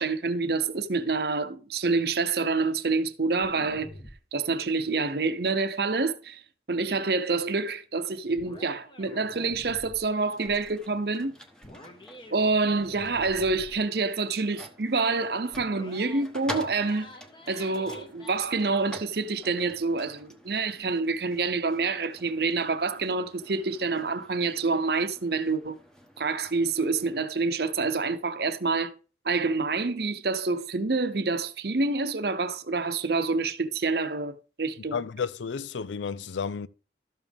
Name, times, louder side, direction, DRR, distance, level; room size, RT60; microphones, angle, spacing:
voice 1, 0.0-3.9 4.3-6.4 6.7-11.4 12.3-17.1 17.5-25.8 26.2-29.0 29.2-35.0, right 3 dB, 60° right, 0.8 m, -27 dB
sound 1, 3.4-4.2 8.4-10.0 10.5-10.7 11.6-12.4 12.6-13.8 15.5-16.3 16.6-18.4, left 1 dB, 25° left, 1.3 m, -47 dB
sound 2, 10.1-27.2, equal, 5° left, 1.1 m, -47 dB
voice 2, 34.9-36.7, left 6 dB, 85° left, 0.5 m, -32 dB
12.5 x 7.3 x 3.5 m
head